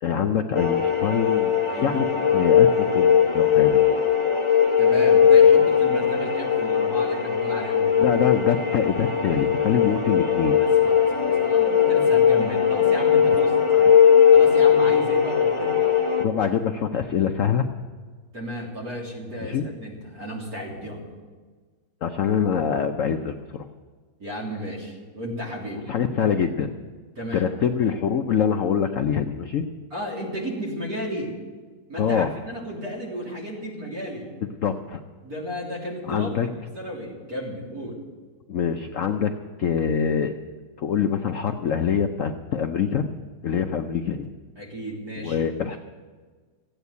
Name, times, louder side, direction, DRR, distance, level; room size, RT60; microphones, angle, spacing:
voice 1, 0.0-2.1 2.3-3.9 8.0-10.6 16.2-17.7 19.4-19.6 22.0-23.7 25.9-26.7 27.3-29.6 32.0-32.3 34.6-35.0 36.1-36.5 38.5-39.3 39.6-40.4 40.8-43.1 43.4-44.3 45.2-45.8, left 7 dB, 75° left, 6 dB, 0.7 m, -24 dB
sound 1, 0.5-16.2, left 8 dB, 20° left, 0.8 m, -19 dB
voice 2, 1.7-2.0 4.8-7.9 10.6-13.5 14.3-15.9 18.3-21.0 24.2-25.9 26.3-26.4 27.2-27.5 29.9-31.3 31.9-34.3 35.2-36.3 36.7-38.0 44.6-45.4 45.7-45.8, equal, 45° right, -3 dB, 3.9 m, -33 dB
15.5 x 8.9 x 8.2 m, 1.4 s
omnidirectional pair, 2.2 m